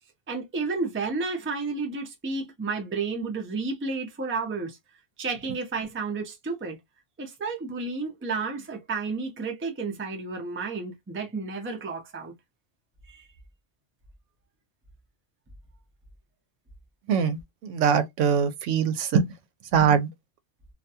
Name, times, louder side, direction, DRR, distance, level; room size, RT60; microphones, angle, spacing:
voice 1, 0.3-4.8 5.2-6.8 7.2-12.3 13.1-13.3, right 4 dB, 15° right, 0.4 m, -31 dB
voice 2, 17.6-19.3 19.7-20.1, right 7 dB, 80° right, 0.9 m, -22 dB
2.5 x 2.2 x 2.6 m
omnidirectional pair, 1.3 m